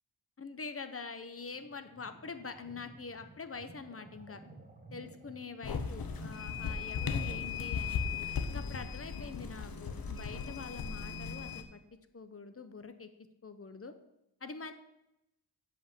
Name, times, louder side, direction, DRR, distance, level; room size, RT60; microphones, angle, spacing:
voice 1, 0.4-4.4 4.9-8.0 8.5-11.8 12.1-13.1 13.4-13.9 14.4-14.7, left 4 dB, 30° left, 9 dB, 0.8 m, -45 dB
sound 1, 1.5-9.1, right 2 dB, 20° right, 1.4 m, -55 dB
sound 2, 5.6-11.6, left 6 dB, 55° left, 1.0 m, -37 dB
8.1 x 5.2 x 7.6 m, 0.88 s
wide cardioid pair, 120°, 43 cm